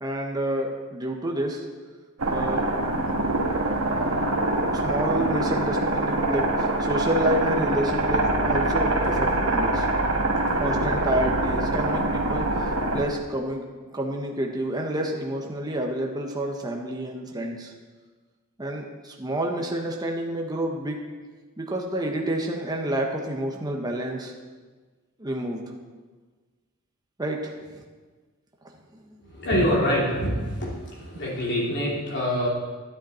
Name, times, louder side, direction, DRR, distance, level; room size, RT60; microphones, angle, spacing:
voice 1, 0.0-1.7 2.3-2.7 4.7-9.9 10.6-13.6 13.9-17.7 18.6-21.0 21.6-24.3 25.2-25.6 27.2-27.8 29.1-29.2, right 1 dB, 20° right, 1 dB, 1.0 m, -29 dB
sound 1, 2.2-13.0, right 2 dB, 70° right, 1.5 m, -24 dB
voice 2, 29.3-32.5, equal, 55° left, -4 dB, 2.8 m, -25 dB
12.0 x 10.5 x 4.3 m, 1.4 s
head